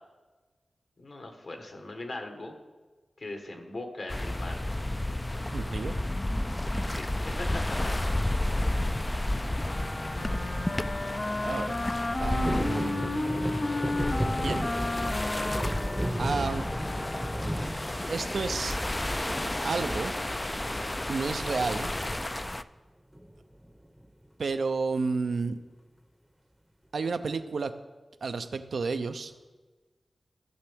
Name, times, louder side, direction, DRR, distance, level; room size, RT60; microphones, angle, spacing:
voice 1, 1.0-2.5 3.2-4.6 6.9-7.9 8.4-8.9, left 2 dB, 65° left, 4 dB, 1.4 m, -40 dB
sound 1, 4.1-22.6, left 1 dB, 20° left, 0.3 m, -32 dB
voice 2, 5.5-5.9 11.4-11.7 12.2-13.5 14.4-14.6 16.2-16.6 18.1-18.8 19.6-20.1 21.1-21.9 24.4-25.6 26.9-27.7 28.2-29.3, right 4 dB, 80° right, 10 dB, 0.5 m, -31 dB
Wind instrument woodwind instrument, 9.6-17.7, left 2 dB, 45° left, 0.8 m, -34 dB
sound 2, 12.4-18.6 19.1-19.7 20.9-21.4 21.6-21.7 22.0-22.3 23.1-24.1 24.5-24.6, right 1 dB, 5° right, 0.7 m, -34 dB
14.5 x 6.8 x 3.5 m, 1.3 s
cardioid pair, 45°, 0 cm